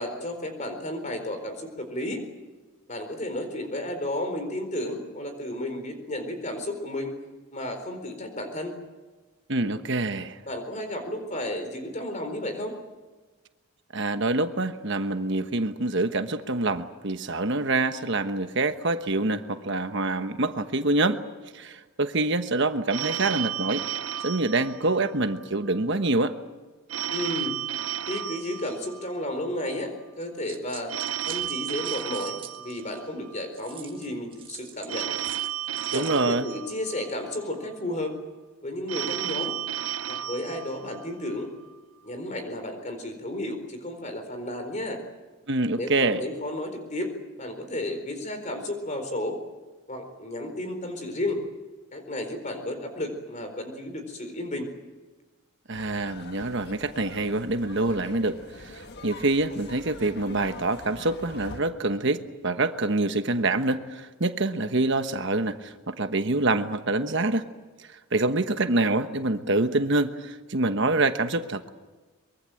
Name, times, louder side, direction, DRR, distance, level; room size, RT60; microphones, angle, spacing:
voice 1, 0.0-2.2 2.9-7.1 7.5-8.7 9.6-9.7 10.4-12.7 27.1-27.6 28.1-30.9 31.3-35.2 35.9-38.1 38.6-39.6 40.1-41.5 42.0-45.0 45.7-49.4 49.9-51.4 51.9-54.7 58.0-58.1, left 1 dB, 35° left, 6 dB, 4.3 m, -33 dB
voice 2, 9.5-10.4 13.9-21.2 21.5-23.8 24.2-26.4 35.9-36.5 45.5-46.2 55.7-67.5 67.8-71.7, right 2 dB, 55° right, 9 dB, 1.2 m, -26 dB
Telephone, 22.9-25.4 26.9-29.4 30.9-33.4 34.9-37.4 38.9-41.4, right 10 dB, 75° right, 0.8 m, -33 dB
sound 1, 30.2-33.0 33.5-36.2, right 7 dB, 25° right, 1.9 m, -45 dB
sound 2, 55.7-61.6, left 2 dB, 50° left, 1.6 m, -44 dB
23.5 x 23.5 x 7.8 m, 1.3 s
head